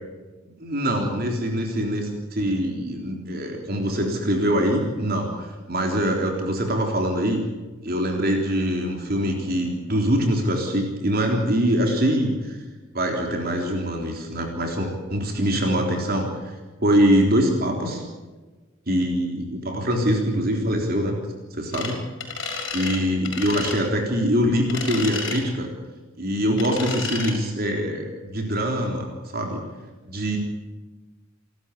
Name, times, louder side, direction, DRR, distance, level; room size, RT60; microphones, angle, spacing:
voice 1, 0.6-7.4 7.8-12.6 12.9-16.5 16.8-18.0 18.9-21.2 21.5-22.0 22.7-25.7 26.2-29.6 30.1-30.4, equal, 45° right, 2 dB, 3.7 m, -23 dB
sound 1, 21.7-21.9 22.2-23.0 23.2-23.8 24.7-25.4 26.6-27.3, left 5 dB, 60° left, 6.1 m, -31 dB
29.5 x 13.0 x 8.5 m, 1.3 s
head